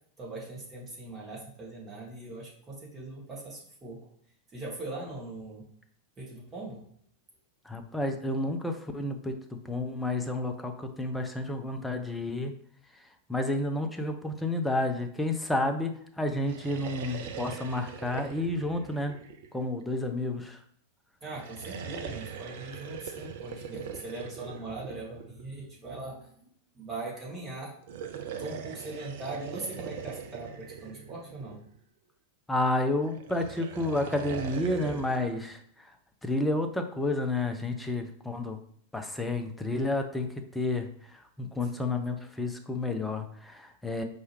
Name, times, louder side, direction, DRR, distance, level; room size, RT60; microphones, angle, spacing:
voice 1, 0.2-4.0 4.5-5.6 6.2-6.8 21.2-26.3 26.7-27.7 28.4-31.6, right 2 dB, 20° right, -5 dB, 1.7 m, -40 dB
voice 2, 7.6-9.4 9.6-12.5 12.9-19.2 19.5-20.6 32.5-35.9 36.2-38.6 38.9-44.0, left 2 dB, 5° left, 5 dB, 0.6 m, -31 dB
sound 1, 16.3-20.0 21.3-25.6 27.8-31.8 33.1-35.3, right 7 dB, 55° right, 0.5 m, -41 dB
4.7 x 2.8 x 3.1 m, 0.63 s
figure-of-eight pair, 90°, 0 cm